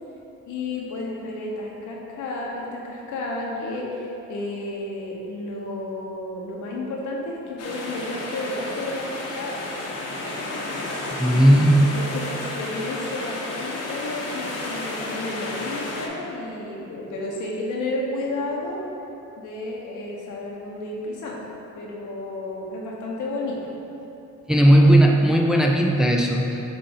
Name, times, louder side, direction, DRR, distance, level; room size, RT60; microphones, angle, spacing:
voice 1, 0.5-9.6 11.2-18.8 19.4-21.4 21.7-23.7, left 2 dB, 80° left, -2 dB, 1.2 m, -32 dB
sound 1, 7.6-16.1, left 2 dB, 55° left, 1.1 m, -32 dB
voice 2, 11.1-11.8 24.5-26.6, right 1 dB, ahead, 0 dB, 0.5 m, -16 dB
7.5 x 2.7 x 5.5 m, 2.9 s
cardioid pair, 90°, 30 cm